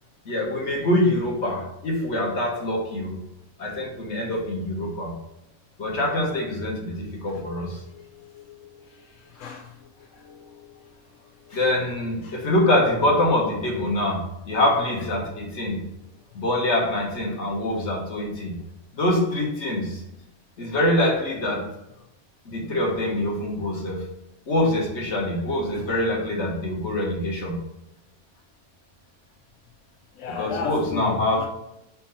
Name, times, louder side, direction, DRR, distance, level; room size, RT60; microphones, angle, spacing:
voice 1, 0.2-3.2 3.6-5.1 5.8-7.8 11.5-15.8 16.3-18.5 19.0-20.0 20.6-21.7 22.4-24.0 24.5-27.6 30.3-31.5, left 1 dB, 65° left, 0 dB, 1.7 m, -24 dB
voice 2, 7.9-8.4 9.4-9.7 10.2-10.4 12.2-12.4 25.7-25.8 30.2-31.5, left 7 dB, 90° left, 2 dB, 1.0 m, -34 dB
4.4 x 4.2 x 5.6 m, 0.85 s
omnidirectional pair, 1.3 m